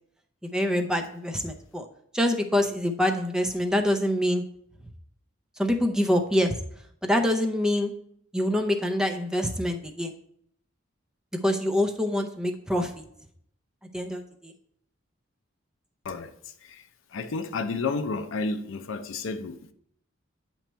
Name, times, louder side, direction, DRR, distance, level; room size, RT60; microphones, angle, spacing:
voice 1, 0.4-1.9 2.1-4.4 5.6-6.6 7.0-7.9 8.3-10.1 11.4-12.9 13.9-14.5, left 1 dB, 5° right, 0.5 m, -25 dB
voice 2, 16.6-19.7, left 4 dB, 80° left, 0.5 m, -31 dB
8.9 x 3.1 x 4.4 m
head